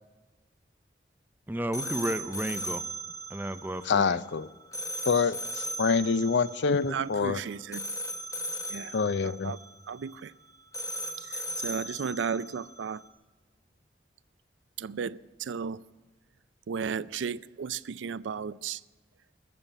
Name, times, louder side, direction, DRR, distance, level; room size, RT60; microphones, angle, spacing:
voice 1, 1.5-2.8 3.3-4.2, right 1 dB, 10° right, 12 dB, 0.5 m, -32 dB
sound 1, 1.7-13.1, right 1 dB, 20° left, 1.1 m, -38 dB
voice 2, 3.8-4.5 5.1-7.4 8.9-9.5, left 5 dB, 75° left, 17 dB, 0.5 m, -26 dB
voice 3, 6.9-7.8 8.7-9.6 9.9-10.3 11.2-13.0 14.8-15.8 16.7-18.8, right 6 dB, 90° right, 19 dB, 0.4 m, -34 dB
14.5 x 6.9 x 9.0 m, 1.3 s
head